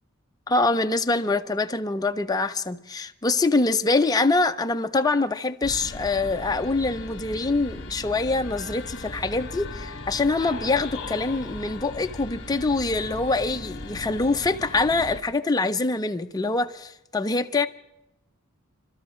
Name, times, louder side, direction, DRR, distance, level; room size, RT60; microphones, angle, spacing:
voice 1, 0.5-17.7, left 3 dB, 15° left, 0.5 m, -24 dB
sound 1, 5.6-15.2, left 2 dB, 55° left, 1.5 m, -38 dB
29.5 x 13.0 x 3.1 m
head